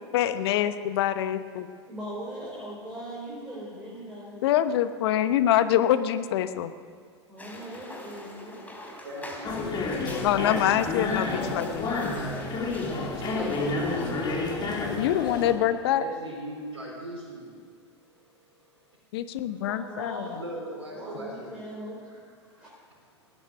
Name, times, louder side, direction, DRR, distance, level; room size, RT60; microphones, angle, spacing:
voice 1, 0.1-1.7 4.4-6.7 10.2-11.9 15.0-16.0 19.1-20.4, left 11 dB, 60° left, 11 dB, 1.0 m, -25 dB
voice 2, 1.9-4.5 7.3-8.6 19.6-20.4 20.9-22.7, equal, 10° right, -7 dB, 5.1 m, -40 dB
sound 1, 7.4-14.2, left 1 dB, 10° left, 4.2 m, -45 dB
voice 3, 9.0-10.4 10.8-14.1 15.9-17.5 18.1-18.3 18.6-18.8 19.2-19.3 20.3-21.5, right 1 dB, 80° right, -6 dB, 4.7 m, -40 dB
sound 2, 9.4-15.5, left 3 dB, 30° left, 3.8 m, -30 dB
18.0 x 11.0 x 6.8 m, 2.1 s
hypercardioid pair, 95°, 15 cm